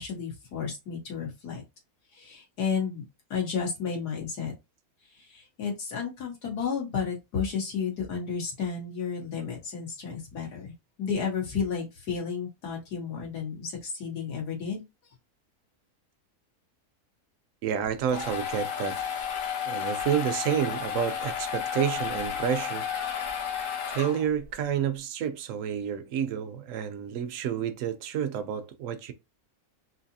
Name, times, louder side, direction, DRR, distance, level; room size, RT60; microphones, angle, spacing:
voice 1, 0.0-1.6 2.2-3.0 3.3-4.5 5.3-10.7 11.0-14.8, left 6 dB, 85° left, 2.0 m, -32 dB
voice 2, 17.6-19.0 19.7-22.9 23.9-29.1, right 8 dB, 65° right, 0.9 m, -29 dB
sound 1, 17.8-24.5, left 8 dB, 60° left, 1.1 m, -32 dB
3.9 x 2.8 x 2.7 m
omnidirectional pair, 1.7 m